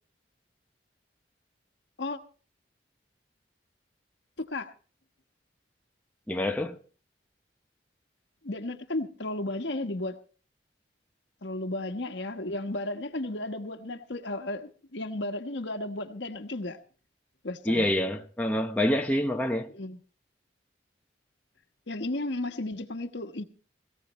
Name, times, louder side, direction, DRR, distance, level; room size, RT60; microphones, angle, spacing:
voice 1, 4.4-4.7 8.4-10.2 11.4-16.8 17.4-17.9 19.7-20.0 21.9-23.4, left 2 dB, 70° left, 1.3 m, -34 dB
voice 2, 6.3-6.8 17.7-19.7, left 1 dB, 10° left, 0.8 m, -27 dB
17.5 x 17.5 x 3.1 m
head